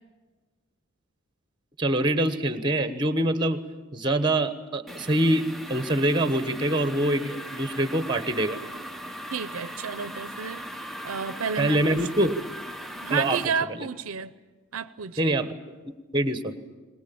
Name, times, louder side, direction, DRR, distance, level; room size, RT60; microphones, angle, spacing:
voice 1, 1.8-3.6 3.9-8.6 11.6-12.3 13.1-13.9 15.2-15.5 16.1-16.5, right 1 dB, 20° right, 1.2 m, -25 dB
sound 1, 4.9-13.4, equal, ahead, 0.7 m, -39 dB
voice 2, 9.3-10.6 11.0-12.3 13.0-14.3 14.7-15.3, right 6 dB, 75° right, 0.6 m, -31 dB
22.0 x 20.0 x 8.6 m
head